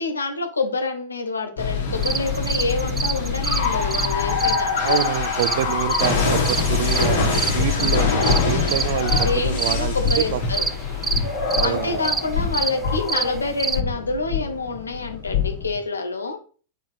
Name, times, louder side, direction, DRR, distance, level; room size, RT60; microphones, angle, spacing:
voice 1, 0.0-5.0 7.7-8.2 9.2-10.6 11.6-16.4, left 3 dB, 75° left, 1.1 m, -27 dB
sound 1, 1.6-15.8, left 5 dB, 60° left, 2.0 m, -24 dB
sound 2, 2.0-13.8, right 5 dB, 15° right, 0.3 m, -28 dB
voice 2, 4.8-10.4 11.6-12.0, right 12 dB, 55° right, 0.6 m, -27 dB
4.5 x 4.5 x 5.5 m
figure-of-eight pair, 90°, 0 cm